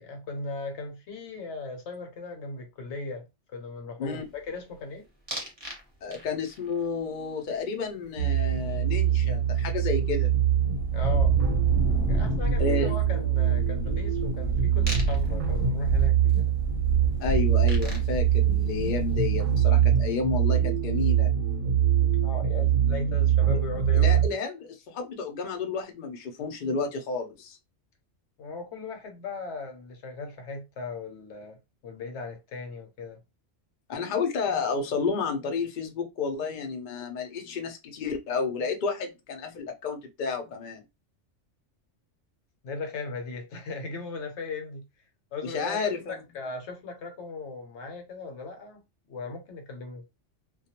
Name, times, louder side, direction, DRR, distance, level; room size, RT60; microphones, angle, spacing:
voice 1, 0.0-3.2 3.5-5.1 10.9-11.4 12.0-16.5 22.2-24.2 28.4-33.2 42.6-44.8 45.3-48.8 49.1-50.0, left 3 dB, 70° left, 1.0 m, -38 dB
sound 1, 5.3-5.8 6.1-6.6 9.0-9.1 9.3-19.4, right 1 dB, 25° right, 0.7 m, -31 dB
voice 2, 6.0-10.4 12.6-12.9 17.2-21.3 23.9-27.6 33.9-40.8 45.4-46.2, left 5 dB, 55° left, 0.6 m, -31 dB
sound 2, 8.2-24.3, right 10 dB, 60° right, 0.8 m, -24 dB
2.3 x 2.2 x 2.8 m
omnidirectional pair, 1.3 m